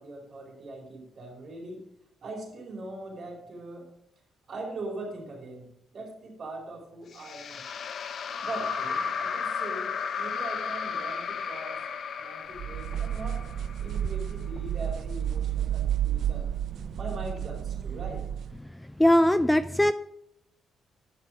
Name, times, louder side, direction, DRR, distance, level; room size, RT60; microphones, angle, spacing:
voice 1, 0.0-1.8 2.2-3.9 4.5-7.6 8.4-11.8 12.2-13.4 13.8-16.5 17.0-18.2, right 2 dB, 50° right, 1 dB, 4.5 m, -41 dB
sound 1, 7.1-14.4, left 6 dB, 55° left, 0.8 m, -34 dB
sound 2, 12.6-18.6, right 10 dB, 65° right, 0.4 m, -31 dB
voice 2, 19.0-19.9, left 1 dB, 10° left, 14 dB, 0.4 m, -20 dB
11.0 x 6.2 x 6.1 m, 0.80 s
cardioid pair, 90°, 0 cm